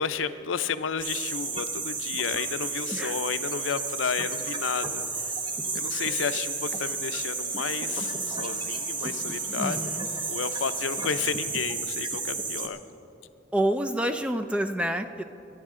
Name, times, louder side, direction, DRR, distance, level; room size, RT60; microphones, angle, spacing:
voice 1, 0.0-5.4 5.7-9.9 10.3-12.8, left 6 dB, 85° left, 12 dB, 0.5 m, -32 dB
sound 1, 1.0-12.7, right 4 dB, 25° right, 0.8 m, -32 dB
sound 2, 4.1-11.8, left 3 dB, 20° left, 3.4 m, -52 dB
voice 2, 9.5-10.1 13.5-15.2, right 1 dB, 5° right, 8 dB, 0.4 m, -28 dB
22.0 x 9.7 x 3.7 m, 2.9 s
head